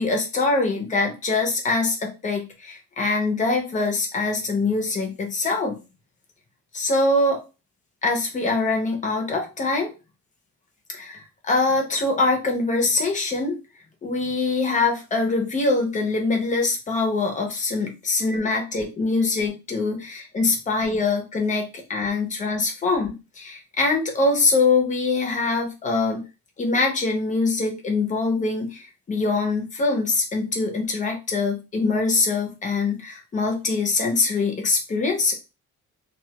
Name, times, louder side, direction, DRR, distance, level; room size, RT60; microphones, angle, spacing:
voice 1, 0.0-5.8 6.7-7.4 8.0-9.9 10.9-13.6 14.0-26.2 26.6-35.3, left 3 dB, 25° left, 2 dB, 0.5 m, -23 dB
2.2 x 2.1 x 2.8 m, 0.29 s
cardioid pair, 180°, 31 cm